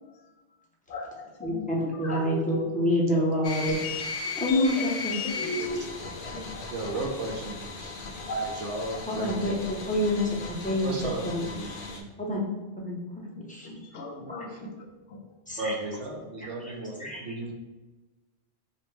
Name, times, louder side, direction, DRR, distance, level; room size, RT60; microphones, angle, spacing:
voice 1, 0.9-2.7 3.1-3.2 5.3-6.7 8.2-8.5 13.4-14.8 15.1-15.2, left 1 dB, 85° left, 0 dB, 1.0 m, -37 dB
voice 2, 1.4-3.8 4.4-5.1 9.1-9.5 9.9-10.2 10.6-10.9 11.2-11.4 12.2-12.4 12.8-13.0 13.5-13.7 15.5-15.7 17.0-17.2, left 1 dB, 10° left, -4 dB, 0.6 m, -26 dB
sound 1, 3.4-12.0, left 4 dB, 60° left, 0.7 m, -37 dB
voice 3, 6.7-7.9 8.4-9.6 10.8-12.1 14.5-14.6 15.6-17.5, right 2 dB, 90° right, 1 dB, 1.0 m, -35 dB
5.1 x 2.1 x 3.2 m, 1.2 s
omnidirectional pair, 1.2 m